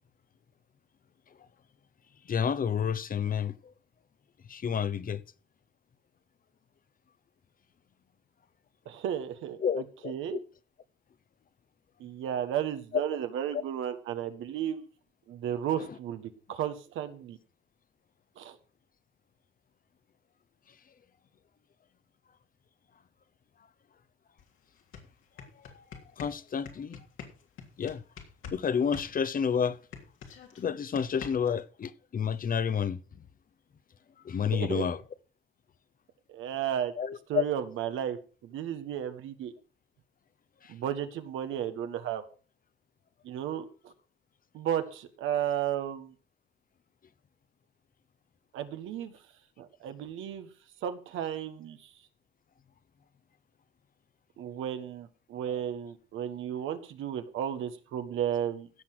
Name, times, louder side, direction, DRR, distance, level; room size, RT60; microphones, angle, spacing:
voice 1, 2.2-3.7 4.5-5.2 9.6-10.4 12.9-13.0 13.5-13.6 15.8-16.0 25.4-25.8 26.2-27.0 27.8-28.0 28.5-29.8 30.6-33.2 34.2-35.0 37.0-37.4 40.6-40.7 55.5-55.6, left 7 dB, 45° left, 0.9 m, -30 dB
voice 2, 8.8-10.4 12.0-14.9 15.3-17.4 18.4-18.6 34.5-34.9 36.3-36.9 37.3-39.5 40.7-42.2 43.2-43.9 44.5-46.1 48.5-49.1 49.6-50.5 50.8-51.9 54.4-58.7, right 10 dB, 85° right, 1.5 m, -34 dB
sound 1, 24.4-24.5 24.8-28.6 28.9-31.6, left 6 dB, 85° left, 3.3 m, -45 dB
16.0 x 5.9 x 6.3 m
cardioid pair, 90°, 20 cm